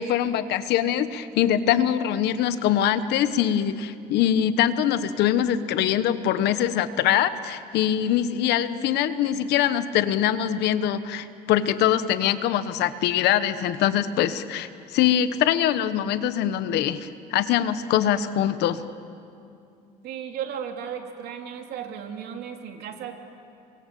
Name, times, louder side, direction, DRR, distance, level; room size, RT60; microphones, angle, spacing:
voice 1, 0.0-18.8, left 10 dB, 80° left, 12 dB, 1.2 m, -23 dB
voice 2, 20.0-23.1, right 8 dB, 75° right, 4 dB, 2.9 m, -35 dB
29.5 x 24.0 x 7.7 m, 2.5 s
cardioid pair, 110°, 17 cm